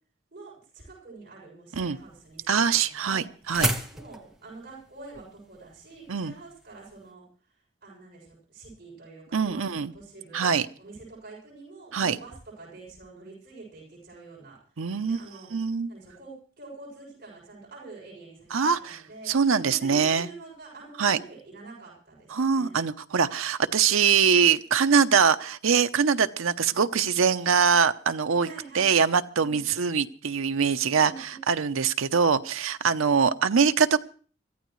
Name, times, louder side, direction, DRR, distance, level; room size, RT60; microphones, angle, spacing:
voice 1, 0.3-3.2 3.9-7.2 7.8-10.5 10.8-14.6 15.0-15.5 15.9-19.3 19.6-22.8 28.4-28.9 29.4-29.6 31.0-31.8, right 3 dB, 45° right, -4 dB, 7.1 m, -46 dB
sound 1, 1.9-7.1, right 1 dB, ahead, 0.9 m, -34 dB
voice 2, 2.5-3.7 6.1-6.3 9.3-9.9 10.3-10.7 11.9-12.2 14.8-15.2 15.5-15.9 18.5-19.0 19.3-20.3 21.0-21.2 22.3-28.5 28.7-34.0, right 6 dB, 90° right, 10 dB, 0.7 m, -23 dB
24.5 x 14.5 x 3.2 m, 0.42 s
head